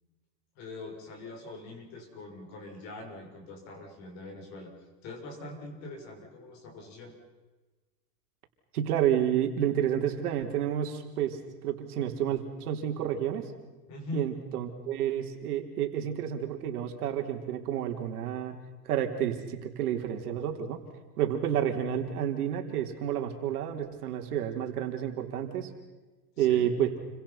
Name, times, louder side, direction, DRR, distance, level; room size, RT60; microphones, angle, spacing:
voice 1, 0.5-4.7 5.0-7.1 13.9-14.3 26.4-26.7, left 2 dB, 35° left, 2 dB, 6.7 m, -42 dB
voice 2, 8.7-13.5 14.1-18.6 18.8-20.8 21.2-25.7 26.4-26.9, right 10 dB, 65° right, 4 dB, 3.9 m, -30 dB
30.0 x 25.0 x 5.8 m, 1.2 s
supercardioid pair, 165°, 48 cm